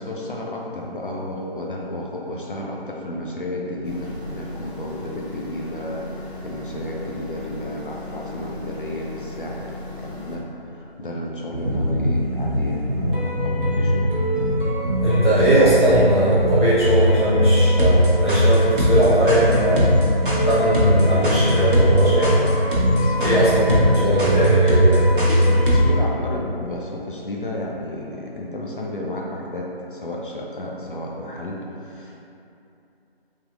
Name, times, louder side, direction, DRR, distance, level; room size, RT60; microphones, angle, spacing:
voice 1, 0.0-14.1 22.9-23.4 24.0-24.2 25.4-32.3, left 1 dB, 55° left, -3 dB, 0.5 m, -32 dB
sound 1, 3.8-10.4, left 2 dB, 90° left, 0.8 m, -37 dB
sound 2, 11.5-25.8, equal, 55° right, 0.8 m, -20 dB
voice 2, 15.0-19.9 20.4-22.3 23.2-25.1, right 1 dB, 25° left, -14 dB, 0.8 m, -19 dB
Wind instrument woodwind instrument, 20.3-25.9, left 3 dB, 10° right, 1.3 m, -36 dB
3.5 x 2.9 x 2.4 m, 2.8 s
figure-of-eight pair, 170°, 31 cm